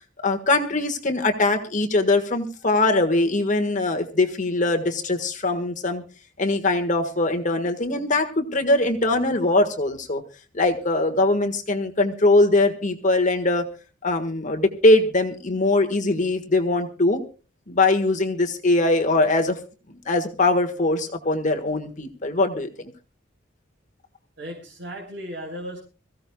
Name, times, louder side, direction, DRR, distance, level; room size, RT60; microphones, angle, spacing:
voice 1, 0.2-6.0 6.4-10.2 10.5-13.6 14.0-17.2 17.7-19.6 20.0-22.7, left 2 dB, 40° left, 5 dB, 1.6 m, -21 dB
voice 2, 24.4-25.8, equal, 60° right, -2 dB, 4.3 m, -35 dB
24.5 x 15.5 x 2.3 m, 0.34 s
head